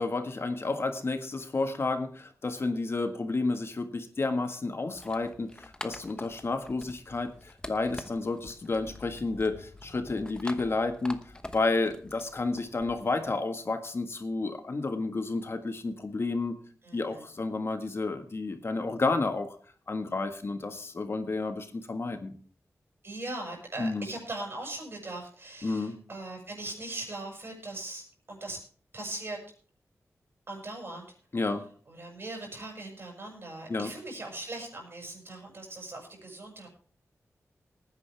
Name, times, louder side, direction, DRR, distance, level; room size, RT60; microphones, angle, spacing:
voice 1, 0.0-11.2 11.5-16.5 16.9-19.6 19.9-22.3 23.8-24.0 25.6-25.9 31.3-31.6 33.7-33.9, left 3 dB, 50° left, 7 dB, 1.7 m, -31 dB
sound 1, 4.9-13.4, left 1 dB, 15° left, 1.1 m, -46 dB
voice 2, 16.8-17.2 23.0-28.6 28.9-29.4 30.5-31.1 31.9-36.7, right 2 dB, 45° right, 0 dB, 6.6 m, -40 dB
19.0 x 9.6 x 3.5 m, 0.43 s
wide cardioid pair, 90°, 6 cm